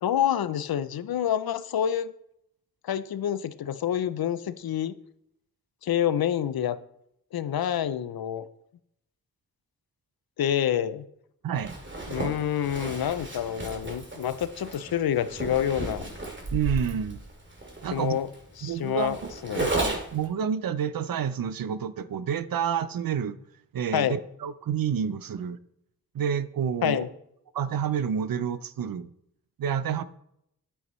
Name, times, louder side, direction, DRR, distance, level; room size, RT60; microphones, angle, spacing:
voice 1, 0.0-2.1 2.8-4.9 5.8-6.8 7.3-8.5 10.4-11.1 12.1-16.1 17.9-18.3 18.6-19.7 23.9-24.2 26.8-27.1, left 10 dB, 85° left, 0.6 m, -27 dB
voice 2, 11.4-11.7 16.5-17.2 17.8-18.2 18.6-23.4 23.7-25.6 26.1-27.0 27.5-29.1 29.6-30.0, right 8 dB, 75° right, 0.6 m, -29 dB
Zipper (clothing), 11.6-20.3, right 2 dB, 30° right, 2.3 m, -34 dB
9.7 x 8.2 x 3.1 m
cardioid pair, 40°, 35 cm